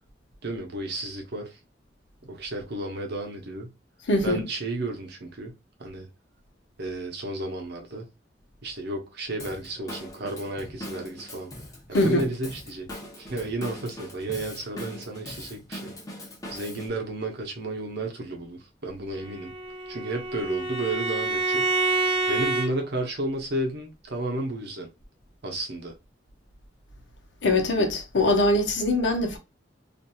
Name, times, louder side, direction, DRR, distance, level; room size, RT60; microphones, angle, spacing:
voice 1, 0.4-1.6 2.2-3.7 4.2-5.5 5.8-6.1 6.8-8.1 8.6-11.5 11.9-12.9 13.2-16.0 16.5-19.5 19.9-24.9 25.4-25.9, right 2 dB, 65° right, 0.8 m, -32 dB
voice 2, 4.1-4.4 11.9-12.3 27.4-29.4, left 2 dB, 75° left, 0.8 m, -22 dB
Drum kit / Drum, 9.4-16.9, left 1 dB, 20° left, 0.7 m, -41 dB
Bowed string instrument, 19.2-22.7, right 2 dB, 30° right, 0.6 m, -27 dB
2.8 x 2.5 x 2.2 m
head